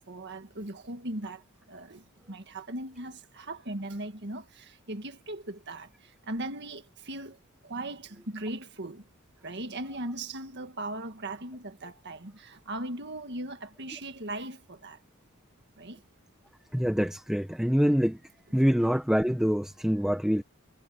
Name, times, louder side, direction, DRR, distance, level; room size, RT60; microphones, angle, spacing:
voice 1, 0.1-7.4 7.6-9.0 9.4-15.0 15.8-16.0, right 1 dB, 55° right, 1.8 m, -38 dB
voice 2, 16.7-18.2 18.5-20.4, equal, 5° right, 0.7 m, -25 dB
head